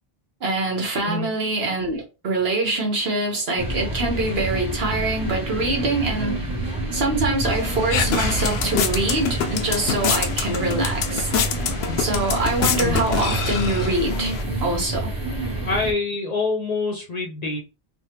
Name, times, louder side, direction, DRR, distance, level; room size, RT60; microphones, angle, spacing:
voice 1, 0.4-6.4 6.9-11.3 12.0-14.3 14.6-15.1, right 2 dB, 70° right, 1.2 m, -24 dB
sound 1, 3.6-15.9, right 1 dB, 25° right, 0.7 m, -27 dB
sound 2, 7.5-14.4, left 6 dB, 80° left, 0.8 m, -26 dB
voice 2, 15.6-17.6, left 3 dB, 45° left, 0.6 m, -25 dB
3.3 x 2.2 x 2.8 m
omnidirectional pair, 1.1 m